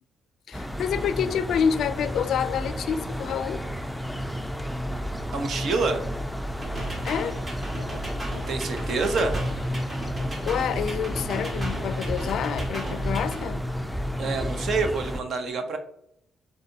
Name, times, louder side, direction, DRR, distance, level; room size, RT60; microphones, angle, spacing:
voice 1, 0.5-3.6 7.0-7.4 10.5-13.6, left 8 dB, 70° left, 0.3 m, -28 dB
sound 1, 0.5-15.2, equal, ahead, 0.4 m, -31 dB
voice 2, 5.3-6.0 8.5-9.3 14.2-15.8, right 4 dB, 65° right, 0.8 m, -27 dB
sound 2, 6.6-13.4, equal, 35° right, 1.7 m, -38 dB
4.8 x 3.9 x 2.7 m
cardioid pair, 90°, 0 cm